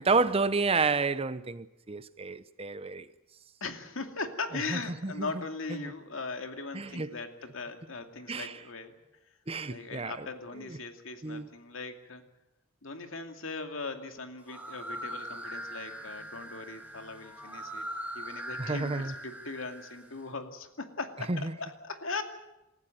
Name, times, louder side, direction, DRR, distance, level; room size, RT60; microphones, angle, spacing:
voice 1, 0.0-3.1 4.7-5.3 5.8-5.9 6.7-7.1 8.3-8.6 9.5-10.3 10.6-10.8 11.2-11.5 18.6-19.1 21.3-21.6, right 4 dB, 30° right, 0.7 m, -30 dB
voice 2, 3.6-8.9 9.6-12.2 12.8-17.8 18.1-22.2, left 3 dB, 70° left, 2.5 m, -39 dB
sound 1, 14.4-20.2, right 1 dB, 5° right, 3.2 m, -41 dB
27.5 x 15.0 x 9.2 m
head